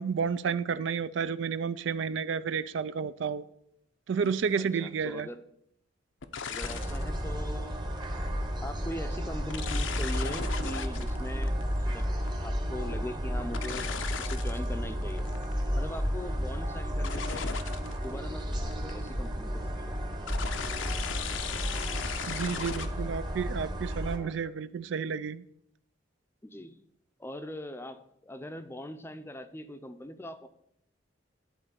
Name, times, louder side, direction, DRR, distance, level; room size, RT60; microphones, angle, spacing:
voice 1, 0.0-3.4 4.1-5.3 22.3-25.4, right 6 dB, 70° right, 0.4 m, -31 dB
sound 1, 4.3-4.5 6.2-7.1 7.8-8.1 9.5-12.5 13.5-14.7 15.0-15.6 17.0-18.1 18.5-19.1 20.3-22.9, left 6 dB, 85° left, 0.7 m, -37 dB
voice 2, 4.7-5.4 6.5-7.8 8.6-12.1 12.4-15.4 15.7-17.6 18.0-20.0 22.5-23.3 24.2-24.4 26.4-26.8 27.2-30.5, left 1 dB, 15° left, 0.5 m, -41 dB
sound 2, 6.6-24.2, equal, 25° right, 1.0 m, -32 dB
11.0 x 4.2 x 6.9 m
head